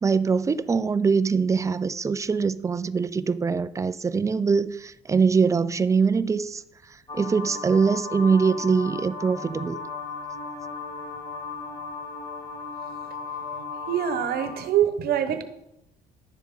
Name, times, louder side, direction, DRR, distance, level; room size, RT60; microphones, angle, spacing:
voice 1, 0.0-6.6 7.1-9.8, right 5 dB, 20° right, 0.4 m, -23 dB
sound 1, 7.1-14.6, left 4 dB, 25° left, 2.1 m, -36 dB
voice 2, 13.5-15.4, right 10 dB, 65° right, 1.0 m, -25 dB
11.0 x 7.1 x 3.7 m
cardioid pair, 110°, 17 cm